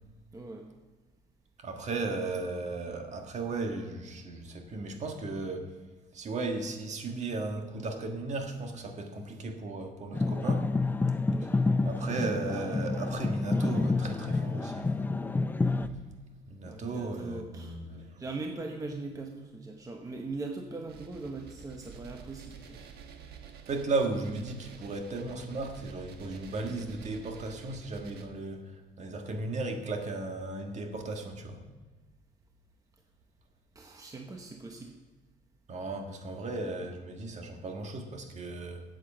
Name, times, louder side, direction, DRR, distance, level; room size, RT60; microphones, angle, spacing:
voice 1, 0.3-0.8 16.6-17.8 18.2-22.8 33.7-35.0, right 3 dB, 20° right, 3 dB, 0.9 m, -40 dB
voice 2, 1.6-5.7 6.1-10.7 11.4-11.5 11.8-15.1 16.5-18.2 23.7-31.6 35.7-38.8, right 3 dB, 45° right, 4 dB, 1.5 m, -35 dB
sound 1, 10.1-15.9, left 3 dB, 10° left, 0.4 m, -29 dB
sound 2, 20.9-28.2, right 6 dB, 70° right, 1.2 m, -49 dB
8.3 x 8.0 x 7.0 m, 1.3 s
cardioid pair, 110°, 17 cm